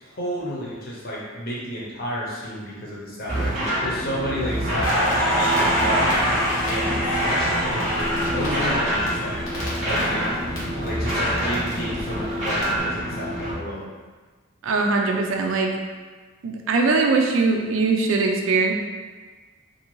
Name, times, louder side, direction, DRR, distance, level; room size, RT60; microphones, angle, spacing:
voice 1, 0.0-6.2 6.6-9.4 9.9-10.4 10.8-13.9, equal, 45° left, -6 dB, 0.8 m, -31 dB
sound 1, 3.3-13.5, equal, 35° right, 0.7 m, -26 dB
Crackle, 4.7-10.6 10.9-12.6, equal, 80° left, 1.0 m, -25 dB
voice 2, 14.6-15.7 16.4-18.7, right 3 dB, 70° right, 2 dB, 0.4 m, -21 dB
2.6 x 2.5 x 3.0 m, 1.4 s
head